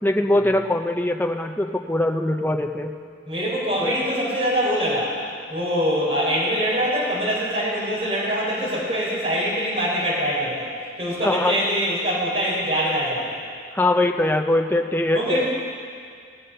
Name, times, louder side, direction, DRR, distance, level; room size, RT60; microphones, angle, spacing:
voice 1, 0.0-2.9 3.8-4.0 11.2-11.6 13.7-15.4, left 1 dB, 10° left, 4 dB, 0.6 m, -22 dB
voice 2, 3.3-5.1 5.5-13.3 15.1-15.4, equal, 30° right, -7 dB, 3.9 m, -24 dB
19.0 x 7.2 x 5.6 m, 2.2 s
head